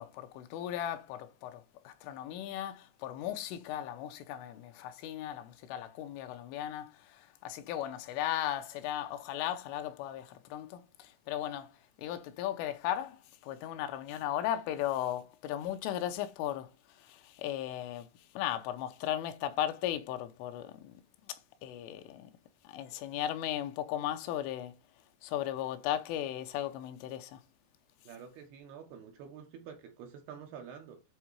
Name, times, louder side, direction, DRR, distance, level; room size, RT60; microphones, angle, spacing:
voice 1, 0.0-18.1 18.4-22.3 22.7-24.8 25.2-27.4, left 11 dB, 90° left, 3.4 m, -37 dB
voice 2, 28.0-31.0, right 7 dB, 70° right, 2.7 m, -48 dB
9.3 x 3.7 x 4.6 m
omnidirectional pair, 5.5 m